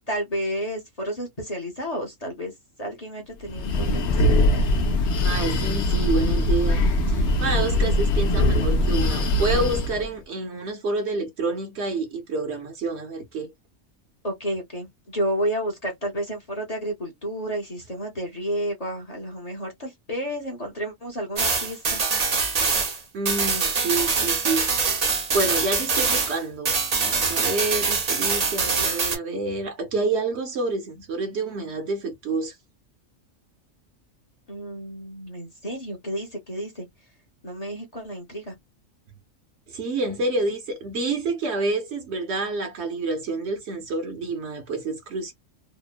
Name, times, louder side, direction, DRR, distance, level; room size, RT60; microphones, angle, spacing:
voice 1, 0.1-2.5 2.8-4.7 14.2-22.0 34.5-36.9 37.4-38.5, equal, 35° left, 0.8 m, -31 dB
Breathing, 3.4-10.1, left 1 dB, 65° left, 0.9 m, -22 dB
voice 2, 5.2-13.5 23.1-25.0 25.3-32.6 39.7-45.3, right 3 dB, 60° right, 0.9 m, -28 dB
sound 1, 21.4-26.4 26.6-29.2, right 4 dB, 40° right, 0.6 m, -24 dB
2.9 x 2.0 x 2.3 m
omnidirectional pair, 1.4 m